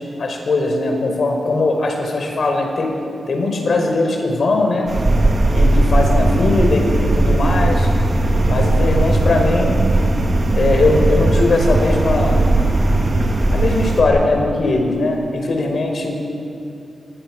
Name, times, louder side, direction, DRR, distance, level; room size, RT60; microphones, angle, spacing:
voice 1, 0.2-2.9 3.3-4.9 5.5-7.9 8.4-9.8 10.5-12.5 13.5-16.2, left 2 dB, 60° left, 2 dB, 5.1 m, -19 dB
sound 1, 4.9-14.0, right 2 dB, 40° right, 3.4 m, -17 dB
28.5 x 23.0 x 6.3 m, 2.6 s
wide cardioid pair, 115°, 0 cm